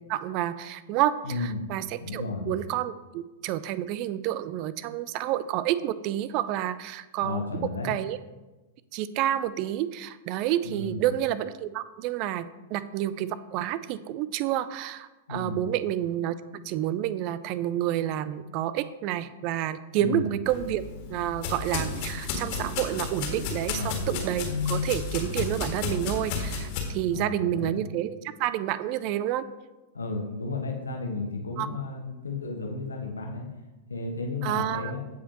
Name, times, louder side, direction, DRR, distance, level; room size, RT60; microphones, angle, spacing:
voice 1, 0.1-7.4 7.8-8.2 8.9-20.8 21.1-29.5 31.6-31.7 34.4-34.9, right 12 dB, 40° right, 15 dB, 0.4 m, -29 dB
voice 2, 1.2-1.7 2.0-2.5 7.2-7.9 10.6-11.0 15.3-15.6 18.4-18.5 20.0-20.3 23.7-24.0 27.1-27.8 29.9-33.4 33.9-35.0, left 3 dB, 80° left, 1 dB, 1.3 m, -33 dB
sound 1, 20.5-26.8, left 5 dB, 45° left, 1.8 m, -32 dB
15.0 x 5.0 x 3.0 m, 1.1 s
figure-of-eight pair, 95°, 0 cm